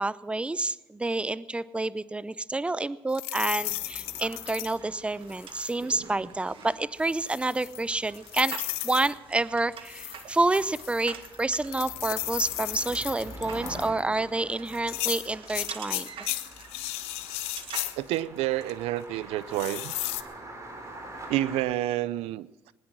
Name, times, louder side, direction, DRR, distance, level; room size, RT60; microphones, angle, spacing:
voice 1, 0.0-8.6 8.8-16.1, right 2 dB, 10° right, 17 dB, 0.6 m, -29 dB
sound 1, 3.1-4.8 5.3-5.8 7.0-9.1 9.8-14.0 14.7-18.2 18.6-18.7 19.5-20.2, left 17 dB, 85° left, 0.8 m, -35 dB
sound 2, 3.6-21.6, right 1 dB, 30° right, 4.3 m, -46 dB
sound 3, 4.4-17.9, right 7 dB, 60° right, 1.6 m, -47 dB
voice 2, 18.0-19.9 21.3-22.7, right 14 dB, 80° right, 18 dB, 0.5 m, -29 dB
20.5 x 10.0 x 6.2 m, 1.1 s
supercardioid pair, 80°, 10 cm